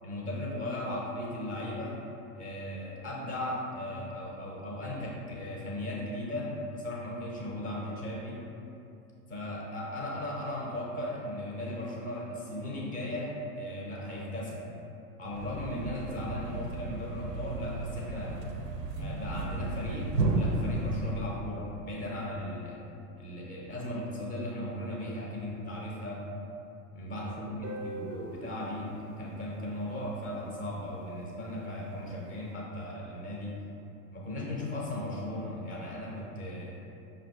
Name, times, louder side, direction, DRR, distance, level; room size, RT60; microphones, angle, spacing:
voice 1, 0.0-2.0 2.3-8.4 9.3-14.6 15.2-18.4 19.0-22.8 23.2-26.2 26.9-33.6 34.1-36.8, left 1 dB, 20° left, -4 dB, 0.5 m, -37 dB
Thump thud, 15.3-21.5, right 2 dB, 90° right, 0.5 m, -33 dB
Guitar, 27.6-30.6, right 1 dB, 30° right, 0.4 m, -43 dB
5.5 x 2.4 x 2.3 m, 2.7 s
figure-of-eight pair, 95°, 47 cm